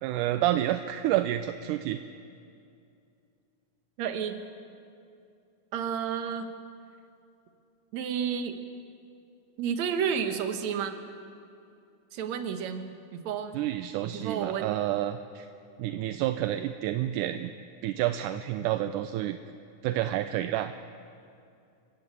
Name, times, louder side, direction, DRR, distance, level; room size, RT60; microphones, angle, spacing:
voice 1, 0.0-2.0 13.5-15.5 15.8-17.5 17.8-19.4 19.8-20.7, right 13 dB, 80° right, 9 dB, 2.1 m, -29 dB
voice 2, 4.0-4.4 5.7-6.5 7.9-8.6 9.6-10.9 12.1-13.6 14.0-14.7, right 7 dB, 65° right, 7 dB, 2.5 m, -31 dB
28.5 x 15.0 x 8.2 m, 2.5 s
omnidirectional pair, 3.7 m